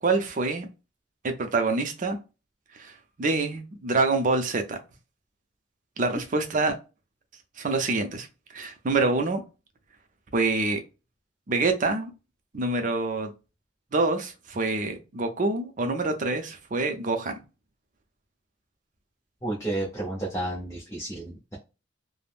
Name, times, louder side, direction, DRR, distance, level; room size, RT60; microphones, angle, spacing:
voice 1, 0.0-0.7 1.2-2.2 2.7-2.9 3.2-4.8 6.0-6.7 7.6-8.3 8.5-9.4 10.3-10.8 11.5-12.1 12.5-13.3 13.9-17.4, right 3 dB, 40° right, 0.5 m, -26 dB
voice 2, 19.4-21.6, right 1 dB, 15° left, 0.7 m, -31 dB
3.4 x 2.0 x 2.4 m
head